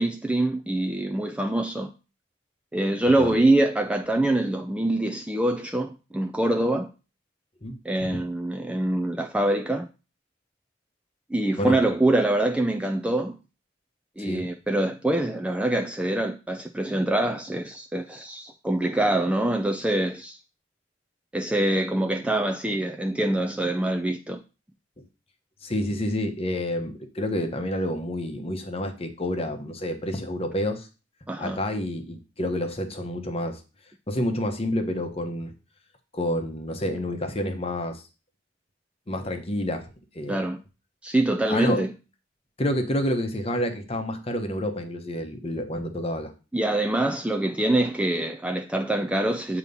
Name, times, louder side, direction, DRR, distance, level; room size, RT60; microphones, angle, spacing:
voice 1, 0.0-1.9 2.7-6.9 7.8-9.9 11.3-13.4 14.2-20.4 21.3-24.4 31.3-31.6 40.3-40.6 41.0-41.9 46.5-49.6, right 1 dB, 5° right, 0.3 m, -24 dB
voice 2, 3.1-3.4 7.6-8.2 11.6-11.8 14.2-14.5 25.0-25.1 25.6-30.9 31.4-33.6 34.1-35.5 36.1-38.0 39.1-39.9 40.1-40.4 41.5-41.8 42.6-46.3, left 1 dB, 30° left, 0.9 m, -29 dB
8.1 x 2.9 x 5.3 m
head